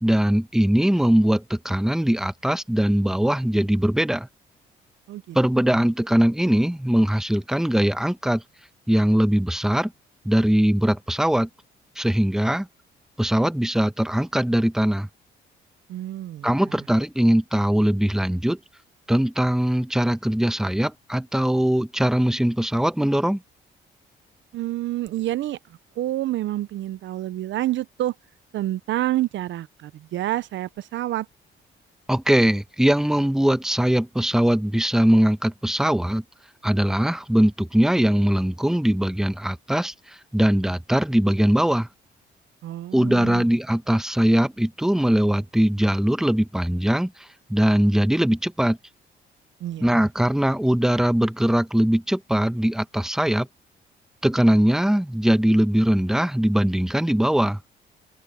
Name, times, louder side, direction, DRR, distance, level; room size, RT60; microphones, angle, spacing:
voice 1, 0.0-4.3 5.3-8.4 8.9-9.9 10.2-11.5 12.0-12.7 13.2-15.1 16.4-18.6 19.1-23.4 32.1-36.2 36.6-39.9 40.3-41.9 42.9-47.1 47.5-48.8 49.8-53.5 54.2-57.6, right 1 dB, ahead, 1.0 m, -21 dB
voice 2, 15.9-16.5 24.5-25.6 26.0-28.1 28.5-31.3 42.6-43.4 49.6-50.1, right 14 dB, 70° right, 0.5 m, -28 dB
open air
cardioid pair, 90°, 20 cm